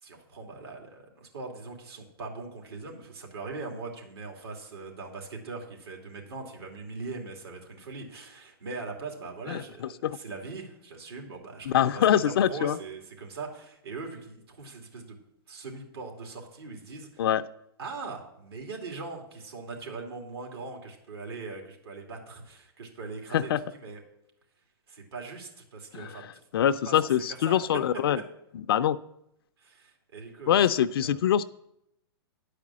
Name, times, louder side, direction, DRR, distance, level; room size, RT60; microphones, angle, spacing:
voice 1, 0.0-15.2 15.5-17.2 17.8-24.0 24.9-26.4 26.9-27.6 29.6-31.2, right 3 dB, 75° right, 1 dB, 2.7 m, -41 dB
voice 2, 11.7-12.8 17.2-17.4 23.3-23.6 25.9-26.1 26.5-28.2 28.7-29.0 30.5-31.4, left 10 dB, 65° left, 11 dB, 0.4 m, -24 dB
10.0 x 5.0 x 7.3 m, 0.80 s
hypercardioid pair, 140°, 13 cm